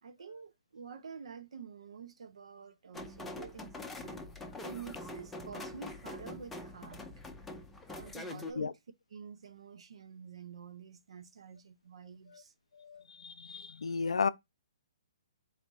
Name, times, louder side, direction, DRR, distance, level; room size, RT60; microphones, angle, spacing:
voice 1, 0.0-4.2 4.6-7.2 7.9-8.8 9.1-12.5, right 6 dB, 70° right, 0.8 m, -49 dB
sound 1, 2.9-8.5, left 2 dB, 5° left, 0.6 m, -44 dB
voice 2, 8.3-8.7 12.3-12.4 12.8-14.3, left 5 dB, 90° left, 0.4 m, -34 dB
4.1 x 2.6 x 4.6 m
hypercardioid pair, 145°, 3 cm